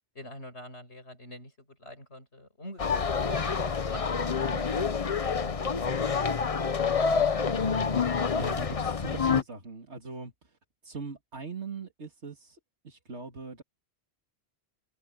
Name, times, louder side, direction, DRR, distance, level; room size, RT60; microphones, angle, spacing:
voice 1, 0.1-4.8, left 1 dB, 80° left, 6.9 m, -45 dB
sound 1, 2.8-9.4, left 5 dB, 35° left, 0.8 m, -27 dB
voice 2, 8.4-10.6 10.8-12.6 12.8-13.6, right 4 dB, 85° right, 2.9 m, -41 dB
omnidirectional pair, 1.1 m